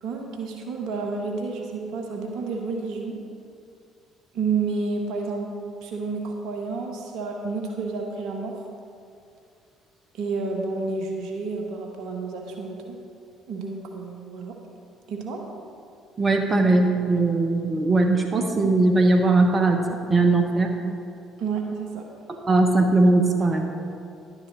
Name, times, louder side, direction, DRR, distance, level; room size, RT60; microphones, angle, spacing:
voice 1, 0.0-3.2 4.3-5.5 5.8-8.5 10.1-13.0 13.5-14.6 15.1-15.4 21.4-22.1, right 4 dB, 60° right, 2 dB, 1.2 m, -30 dB
voice 2, 16.2-20.8 22.3-23.6, right 2 dB, 30° right, 3 dB, 1.1 m, -20 dB
11.0 x 9.4 x 4.0 m, 2.5 s
figure-of-eight pair, 50°, 0 cm